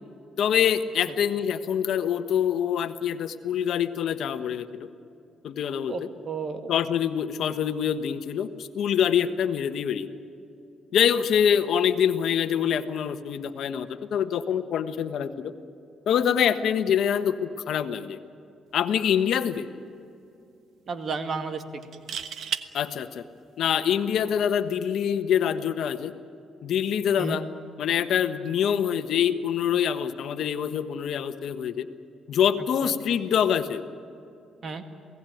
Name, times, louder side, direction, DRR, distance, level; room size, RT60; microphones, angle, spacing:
voice 1, 0.4-4.9 5.4-5.9 6.7-10.1 10.9-15.5 16.1-18.2 18.7-19.7 22.7-23.2 23.6-26.1 26.6-27.4 27.8-31.9 32.3-33.8, left 8 dB, 70° left, 9 dB, 1.2 m, -25 dB
voice 2, 5.9-6.7 20.9-21.6 27.2-27.4 32.8-32.9 34.6-34.8, right 4 dB, 50° right, 7 dB, 2.2 m, -32 dB
sound 1, 19.0-19.2 19.6-19.7 21.8-22.7 24.5-24.7, right 8 dB, 65° right, 1.3 m, -33 dB
28.0 x 18.0 x 9.3 m, 2.7 s
cardioid pair, 90°, 0 cm